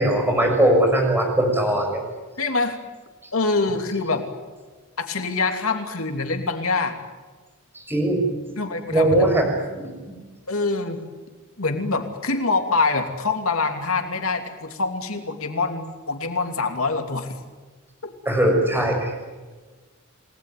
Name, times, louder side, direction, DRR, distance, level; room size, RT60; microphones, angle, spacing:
voice 1, 0.0-2.0 7.9-8.2 8.9-9.5 9.8-10.2 18.3-19.1, right 1 dB, 10° right, 2 dB, 6.9 m, -20 dB
voice 2, 2.4-2.8 3.3-4.2 5.0-6.9 8.6-9.3 10.5-11.0 11.6-17.4, left 3 dB, 85° left, 5 dB, 3.0 m, -25 dB
29.5 x 19.5 x 9.5 m, 1.3 s
head